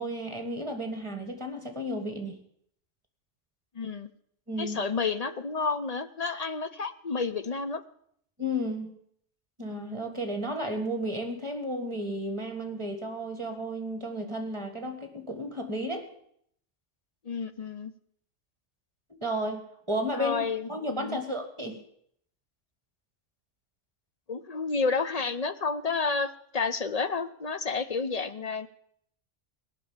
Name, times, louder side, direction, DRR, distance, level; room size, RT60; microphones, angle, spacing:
voice 1, 0.0-2.4 4.5-4.8 8.4-8.9 9.6-16.1 19.2-21.8, equal, 25° right, 5 dB, 1.9 m, -33 dB
voice 2, 3.7-4.1 4.6-7.8 17.2-17.9 20.1-21.2 24.3-28.7, left 4 dB, 40° left, 11 dB, 0.6 m, -30 dB
18.5 x 6.2 x 8.8 m, 0.69 s
omnidirectional pair, 1.3 m